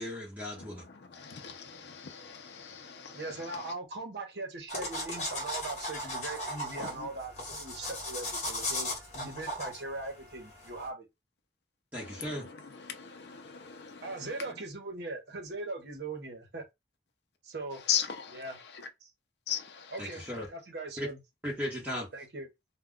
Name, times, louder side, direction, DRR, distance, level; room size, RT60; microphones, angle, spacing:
voice 1, 0.0-0.8 11.9-12.5 20.0-20.5 21.0-21.1 21.4-22.1, equal, 10° right, 0.8 m, -36 dB
voice 2, 0.5-3.7 6.8-7.1 12.0-14.6 17.7-18.9 19.5-20.3, left 8 dB, 65° left, 0.5 m, -39 dB
voice 3, 3.1-11.0 14.0-16.6 17.4-17.8 18.3-18.6 19.9-20.2 20.5-21.2 21.9-22.5, right 2 dB, 65° right, 0.9 m, -40 dB
sound 1, 4.7-10.9, left 1 dB, 40° left, 1.1 m, -37 dB
2.2 x 2.2 x 3.6 m
head